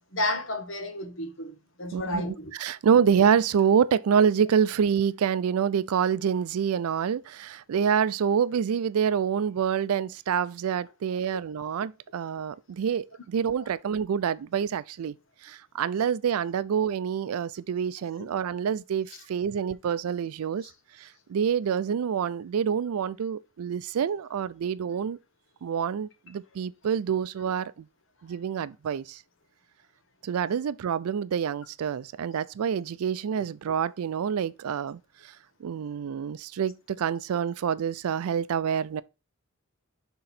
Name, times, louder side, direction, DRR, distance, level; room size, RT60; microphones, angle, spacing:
voice 1, 0.1-2.5 11.2-11.3 18.2-18.3 20.6-20.7, left 1 dB, 60° left, 1.1 m, -32 dB
voice 2, 1.9-2.2 2.6-15.1 15.4-20.7 21.0-25.2 25.6-27.9 28.2-29.2 30.2-35.3 35.6-39.0, right 7 dB, 85° right, 0.4 m, -27 dB
6.0 x 3.8 x 4.1 m
head